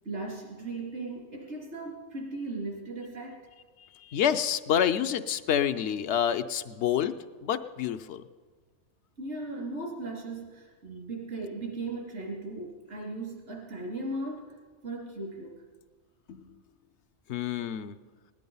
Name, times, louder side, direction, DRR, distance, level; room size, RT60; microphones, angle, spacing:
voice 1, 0.0-3.5 9.2-14.6 14.8-15.6, right 2 dB, 80° right, -1 dB, 3.1 m, -37 dB
voice 2, 3.9-7.2 7.4-8.2 16.3-16.6 17.3-18.0, left 9 dB, 75° left, 10 dB, 0.9 m, -28 dB
17.5 x 11.0 x 5.4 m, 1.5 s
omnidirectional pair, 1.2 m